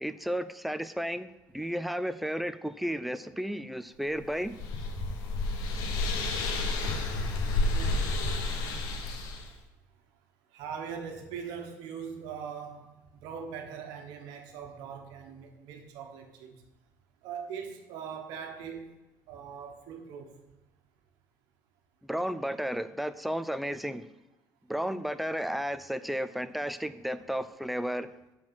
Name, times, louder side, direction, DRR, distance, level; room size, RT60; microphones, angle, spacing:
voice 1, 0.0-1.3 1.5-4.5 22.0-24.0 24.7-28.1, equal, ahead, 11 dB, 0.4 m, -33 dB
sound 1, 4.2-9.5, left 2 dB, 80° left, 1.3 m, -30 dB
voice 2, 7.5-8.1 10.5-12.9 13.2-16.6 17.2-18.9 19.3-20.4, right 7 dB, 85° right, 5 dB, 1.3 m, -41 dB
7.8 x 4.5 x 5.8 m, 1.0 s
cardioid pair, 115°, 7 cm